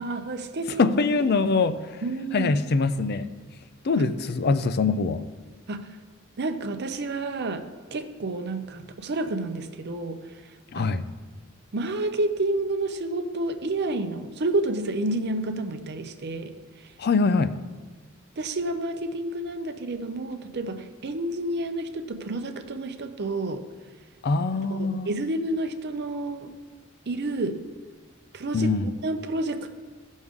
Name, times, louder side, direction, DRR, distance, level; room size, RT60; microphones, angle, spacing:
voice 1, 0.0-0.9 2.0-2.5 3.9-4.0 5.7-5.9 6.4-7.6 7.9-10.2 10.8-10.9 11.7-16.9 18.4-23.6 24.5-26.5 27.1-27.6 28.3-28.7 29.0-29.7, right 2 dB, 55° right, 0.7 m, -30 dB
voice 2, 0.8-2.0 2.3-3.3 3.8-5.2 10.7-11.0 17.0-17.5 24.2-25.1 28.5-28.9, left 4 dB, 50° left, 0.5 m, -23 dB
15.5 x 6.3 x 3.6 m
head